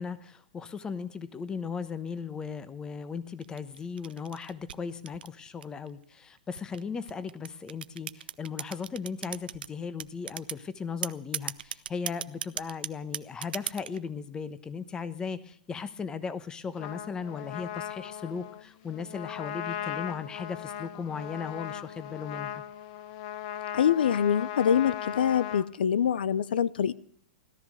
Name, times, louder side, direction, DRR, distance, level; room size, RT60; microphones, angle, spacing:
voice 1, 0.0-22.6, left 5 dB, 15° left, 14 dB, 1.1 m, -37 dB
sound 1, 3.4-5.9 6.6-9.7 10.0-10.6 11.0-14.0, right 9 dB, 80° right, 0.7 m, -36 dB
Trumpet, 16.8-25.7, left 10 dB, 45° left, 1.0 m, -38 dB
voice 2, 23.7-26.9, left 8 dB, 80° left, 20 dB, 0.6 m, -25 dB
17.5 x 13.0 x 6.5 m, 0.65 s
hypercardioid pair, 135°, 5 cm